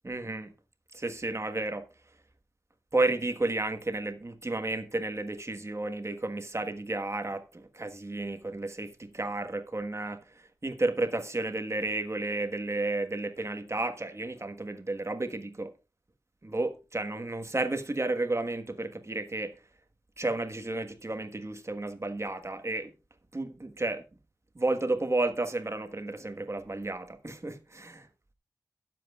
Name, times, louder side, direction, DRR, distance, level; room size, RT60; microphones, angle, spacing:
voice 1, 0.0-0.5 0.9-1.8 2.9-15.7 16.4-19.6 20.2-22.9 23.3-24.0 24.5-28.1, right 2 dB, 35° right, 1.4 m, -32 dB
22.0 x 7.6 x 2.4 m
wide cardioid pair, 80°, 8 cm